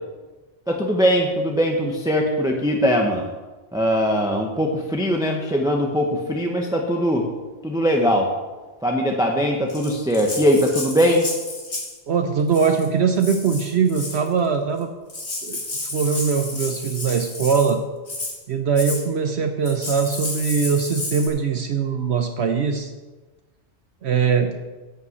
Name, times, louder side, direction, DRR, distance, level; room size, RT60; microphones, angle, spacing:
voice 1, 0.7-3.3 3.7-7.3 7.6-8.3 8.8-11.2, equal, 5° right, 1 dB, 1.0 m, -21 dB
Rattle (instrument), 9.7-12.0 12.5-12.9 13.2-14.3 14.8-14.9 15.1-17.7 18.1-18.4 18.8-19.0 19.6-21.3, left 2 dB, 60° left, 2.5 m, -31 dB
voice 2, 12.1-14.9 15.4-15.6 15.9-17.8 18.5-22.9 24.0-24.5, right 6 dB, 60° right, 5 dB, 1.0 m, -21 dB
11.0 x 5.7 x 8.0 m, 1.2 s
omnidirectional pair, 1.3 m